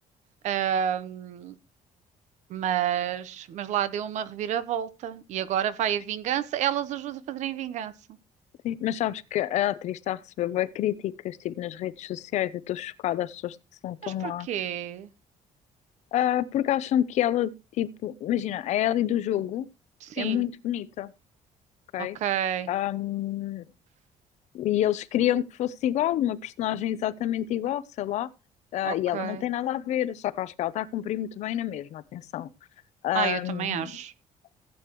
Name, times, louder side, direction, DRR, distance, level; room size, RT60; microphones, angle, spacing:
voice 1, 0.4-1.5 2.5-7.9 14.0-15.1 20.0-20.4 22.1-22.7 28.8-29.4 33.1-34.1, right 10 dB, 65° right, 0.9 m, -29 dB
voice 2, 8.6-13.6 13.8-14.5 16.1-17.5 17.8-19.7 20.2-21.1 21.9-22.2 22.7-23.6 24.5-28.3 28.7-32.5 33.0-33.9, left 12 dB, 60° left, 0.6 m, -28 dB
15.5 x 8.6 x 3.0 m
cardioid pair, 175°, 13 cm